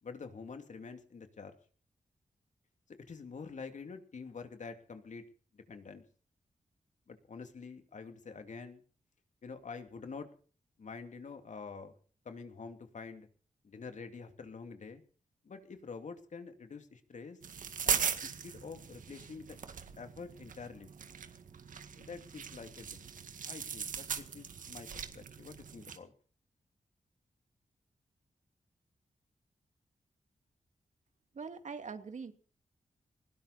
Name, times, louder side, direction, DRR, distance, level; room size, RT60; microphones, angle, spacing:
voice 1, 0.0-1.5 3.0-5.2 5.5-6.0 7.1-8.8 9.4-10.3 10.8-11.9 12.2-13.3 13.6-15.0 15.4-17.4 17.8-19.6 20.0-20.9 22.0-23.1 23.4-26.1, left 5 dB, 65° left, 7 dB, 2.8 m, -47 dB
sound 1, 17.4-26.0, right 7 dB, 85° right, 1.9 m, -39 dB
voice 2, 31.3-32.3, right 5 dB, 65° right, 8 dB, 2.5 m, -42 dB
20.0 x 17.0 x 4.2 m, 0.42 s
cardioid pair, 60°, 13 cm